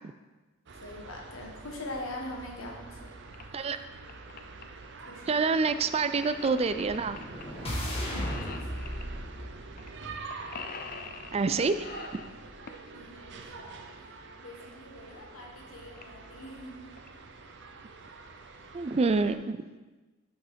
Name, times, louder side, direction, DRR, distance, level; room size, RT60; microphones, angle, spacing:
sound 1, 0.7-19.4, right 4 dB, 60° right, 0.7 m, -46 dB
voice 1, 0.8-3.1 5.0-5.4 8.5-9.0 12.9-17.0, left 1 dB, 75° left, 0 dB, 1.5 m, -43 dB
sound 2, 3.3-3.4 3.9-4.6 5.8-7.4 7.7-9.1 9.8-9.9 10.2-11.4 11.8-12.9 14.5-14.6 15.2-15.3 15.5-15.6 16.0-16.2 16.7-17.1, left 5 dB, 45° left, 0.5 m, -44 dB
voice 2, 5.3-7.2 11.3-11.9 12.1-12.2 18.7-19.6, right 4 dB, 30° right, 11 dB, 0.3 m, -27 dB
sound 3, 6.5-10.7, equal, 30° left, 1.4 m, -36 dB
6.4 x 5.9 x 5.1 m, 1.2 s
head